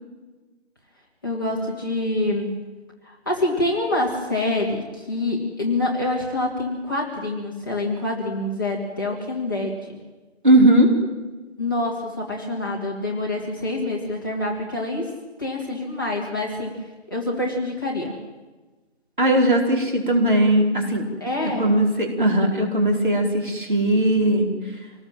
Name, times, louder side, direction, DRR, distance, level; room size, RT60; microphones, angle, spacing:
voice 1, 1.2-2.6 3.0-10.0 11.6-15.1 15.4-16.8 17.1-18.2 21.2-21.8, left 2 dB, 20° left, -4 dB, 2.3 m, -26 dB
voice 2, 10.4-10.9 19.2-21.1 21.4-24.5, right 1 dB, 45° right, 1 dB, 4.5 m, -18 dB
27.0 x 19.5 x 7.5 m, 1.2 s
figure-of-eight pair, 175°, 36 cm